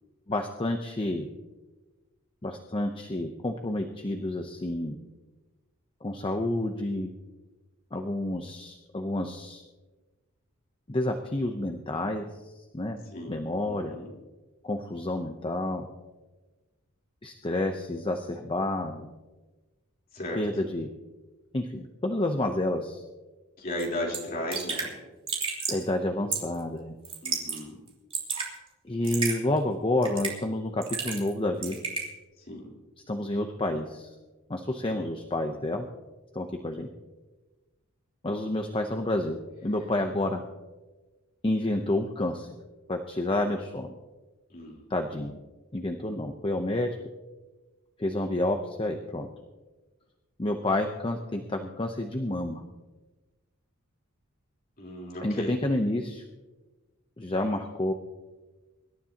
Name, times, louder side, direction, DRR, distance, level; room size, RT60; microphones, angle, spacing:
voice 1, 0.3-1.3 2.4-5.0 6.0-7.1 7.9-9.6 10.9-12.2 12.7-13.0 13.3-14.0 14.6-15.8 17.2-19.1 20.3-20.9 21.5-23.0 25.7-26.9 28.8-31.8 33.1-34.1 34.5-35.9 36.3-36.9 38.2-40.4 41.4-42.5 42.9-43.9 44.9-45.4 45.7-46.9 48.0-49.3 50.4-52.6 55.2-56.2 57.2-57.9, left 1 dB, 25° left, 4 dB, 0.8 m, -29 dB
voice 2, 13.1-14.1 20.1-20.5 23.6-24.9 27.2-27.8 32.4-32.7 34.7-35.0 44.5-44.8 54.8-55.6, left 1 dB, 45° left, -2 dB, 3.7 m, -36 dB
Raindrop / Drip, 23.8-23.9 24.1-24.2 24.5-24.9 25.3-25.8 26.3-26.6 27.0-27.6 27.9-28.5 29.0-29.4 30.0-30.4 30.8-31.3 31.6-32.1, right 5 dB, 25° right, 3.0 m, -31 dB
25.0 x 12.5 x 2.9 m, 1.2 s
head